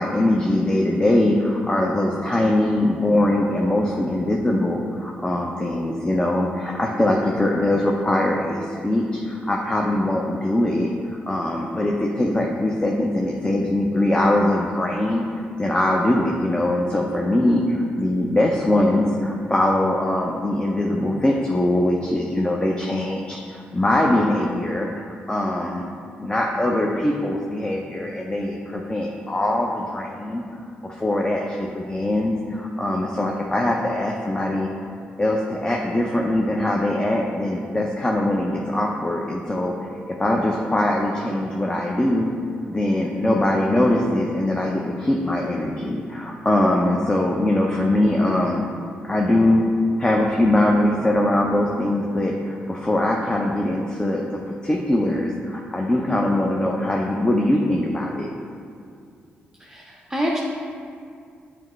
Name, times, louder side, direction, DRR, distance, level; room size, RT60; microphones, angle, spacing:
voice 1, 0.0-10.9 11.3-25.8 26.2-30.4 30.8-34.7 35.2-39.7 40.1-42.3 42.7-48.7 49.0-49.7 50.0-58.3, left 1 dB, 20° left, -1 dB, 0.6 m, -22 dB
voice 2, 59.6-60.4, equal, 10° right, -3 dB, 0.7 m, -26 dB
7.5 x 4.4 x 3.2 m, 2.3 s
supercardioid pair, 60°, 4 cm